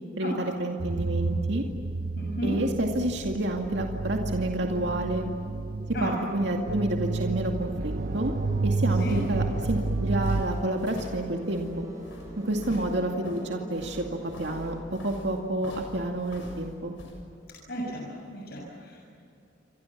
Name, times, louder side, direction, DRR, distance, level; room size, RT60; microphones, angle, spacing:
voice 1, 0.2-1.6 2.4-5.3 6.0-8.3 8.6-11.9 12.4-14.0 14.4-14.7 15.0-16.9, right 1 dB, 65° right, 1 dB, 2.3 m, -29 dB
sound 1, 0.8-10.4, right 3 dB, 50° right, 0.6 m, -30 dB
voice 2, 2.1-2.5 5.9-6.2 9.0-9.2 12.6-12.7 17.7-19.0, equal, 55° left, -2 dB, 6.8 m, -34 dB
sound 2, 7.9-14.8, equal, 15° right, 7.0 m, -46 dB
sound 3, 9.0-17.2, left 1 dB, 85° left, 6.8 m, -44 dB
29.5 x 25.5 x 7.5 m, 2.6 s
head